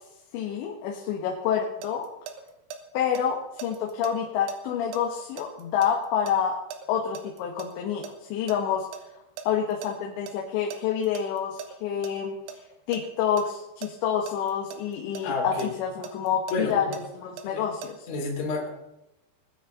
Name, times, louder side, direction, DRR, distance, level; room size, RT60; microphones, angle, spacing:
voice 1, 0.3-2.1 2.9-6.6 6.9-8.9 9.5-12.4 12.9-18.1, left 8 dB, 80° left, 0 dB, 3.5 m, -28 dB
sound 1, 1.4-2.8 3.1-7.7 8.0-9.9 10.3-10.4 10.7-12.1 12.5-13.0 13.4-15.2 15.6-17.9, right 7 dB, 90° right, 3.4 m, -40 dB
voice 2, 15.2-15.7 16.5-16.9 17.4-17.6 18.1-18.7, left 3 dB, 40° left, -2 dB, 3.4 m, -29 dB
22.0 x 9.6 x 3.9 m, 0.88 s
omnidirectional pair, 5.2 m